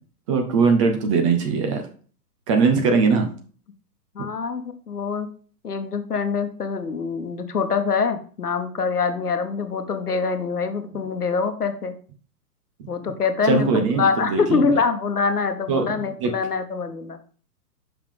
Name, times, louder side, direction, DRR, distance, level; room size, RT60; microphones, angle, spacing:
voice 1, 0.3-1.8 2.5-3.3 12.8-12.9 13.5-14.6 15.7-15.9 16.2-16.3, right 4 dB, 20° right, 4 dB, 0.8 m, -20 dB
voice 2, 4.1-5.3 5.6-11.9 12.9-17.2, left 5 dB, 70° left, 8 dB, 1.2 m, -24 dB
7.1 x 5.7 x 3.5 m, 0.42 s
figure-of-eight pair, 120°, 48 cm